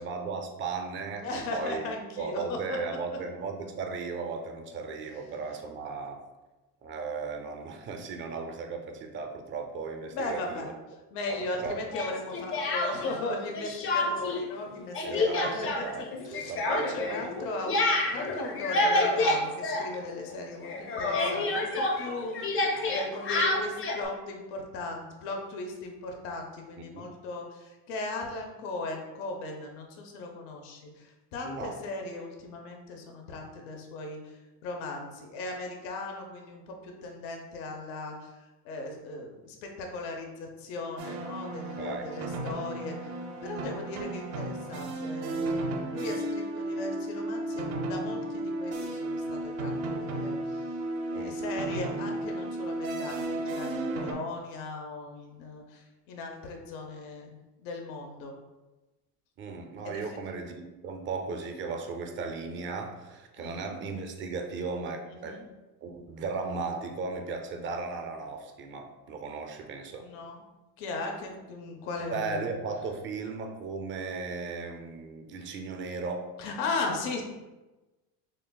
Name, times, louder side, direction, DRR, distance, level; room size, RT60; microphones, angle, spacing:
voice 1, 0.0-1.9 2.2-6.2 6.8-10.7 11.3-11.8 15.0-16.0 16.3-17.5 18.2-18.3 26.9-27.1 31.4-31.8 41.8-42.0 51.1-51.4 59.4-65.4 65.8-70.1 72.0-76.3, right 4 dB, 30° right, 4 dB, 0.4 m, -36 dB
voice 2, 1.2-3.2 10.1-10.7 11.1-17.8 18.0-38.3 38.6-43.1 43.4-45.5 45.9-50.6 51.1-57.3 57.6-58.3 59.8-60.2 63.4-63.8 65.1-65.5 70.0-70.4 70.8-72.5 76.4-77.2, left 2 dB, 85° left, 2 dB, 0.8 m, -37 dB
Speech, 11.9-13.2 13.5-14.4 14.7-20.4 20.6-24.0, left 2 dB, 35° left, 0.5 m, -28 dB
sound 1, 41.0-54.1, right 2 dB, 85° right, 0.8 m, -34 dB
6.3 x 2.3 x 2.2 m, 1.1 s
cardioid pair, 145°, 40 cm